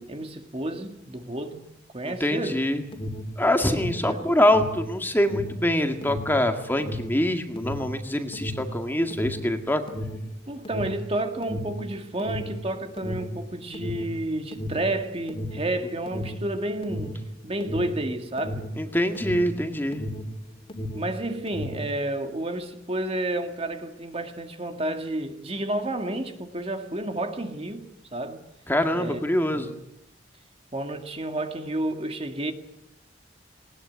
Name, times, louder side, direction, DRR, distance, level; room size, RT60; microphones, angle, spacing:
voice 1, 0.0-1.6 1.9-2.6 3.7-4.3 10.5-18.7 20.9-27.8 28.1-28.5 29.0-29.2 29.5-29.8 30.7-32.5, right 1 dB, 30° right, 2.0 m, -31 dB
voice 2, 2.0-2.8 3.4-9.8 18.8-20.0 28.7-29.7, left 1 dB, 10° left, 2.0 m, -24 dB
Alarm, 2.7-20.4 20.6-21.9, equal, 30° left, 2.9 m, -34 dB
20.0 x 19.5 x 9.5 m
head